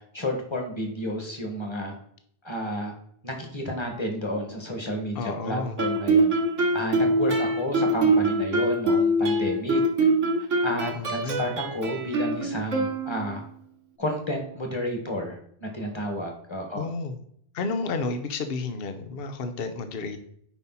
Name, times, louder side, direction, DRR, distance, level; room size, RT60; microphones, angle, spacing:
voice 1, 0.1-1.9 2.4-2.9 3.2-6.3 6.7-9.8 10.6-13.4 14.0-16.9, equal, 20° left, 3 dB, 1.8 m, -31 dB
voice 2, 5.1-5.8 10.9-11.4 16.7-17.2 17.5-20.2, left 3 dB, 55° left, 8 dB, 1.0 m, -31 dB
Guitar, 5.8-13.5, right 2 dB, 80° right, 1.6 m, -24 dB
8.8 x 5.4 x 4.2 m, 0.66 s
omnidirectional pair, 1.2 m